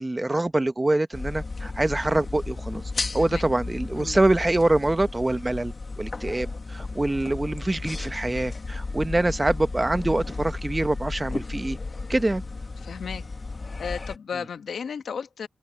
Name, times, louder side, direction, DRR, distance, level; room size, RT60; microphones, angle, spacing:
voice 1, 0.0-2.8 3.1-11.8 12.1-12.4, right 2 dB, 20° right, 1.0 m, -25 dB
sound 1, 1.1-14.2, left 3 dB, 35° left, 1.4 m, -34 dB
voice 2, 12.8-13.3 13.8-15.5, left 6 dB, 75° left, 1.1 m, -34 dB
open air
wide cardioid pair, 100°, 0 cm